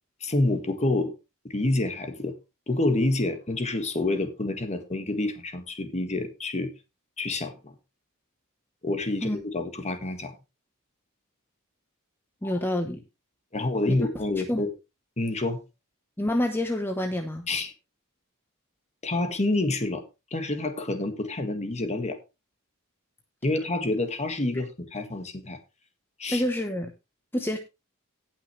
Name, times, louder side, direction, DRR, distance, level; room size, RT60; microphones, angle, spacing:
voice 1, 0.2-1.1 1.4-2.3 2.7-6.7 7.2-7.7 8.8-10.3 12.4-12.5 13.5-14.7 15.2-15.6 17.5-17.7 19.0-20.0 20.3-22.2 23.4-25.6 26.2-26.4, left 2 dB, 30° left, 1.7 m, -28 dB
voice 2, 12.4-13.0 13.9-14.0 14.5-14.6 16.2-17.5 26.3-26.9 27.3-27.6, left 1 dB, 10° left, 0.9 m, -27 dB
18.0 x 6.0 x 3.2 m
head